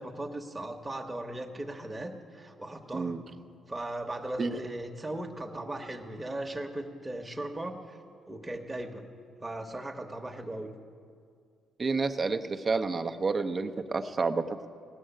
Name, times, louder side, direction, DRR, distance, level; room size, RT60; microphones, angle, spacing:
voice 1, 0.0-3.2 3.7-8.0 8.3-9.0 9.4-10.7, right 1 dB, 15° right, 2 dB, 1.1 m, -38 dB
voice 2, 11.8-14.7, right 4 dB, 35° right, 7 dB, 0.7 m, -29 dB
16.5 x 6.4 x 9.0 m, 2.2 s
cardioid pair, 90°, 0 cm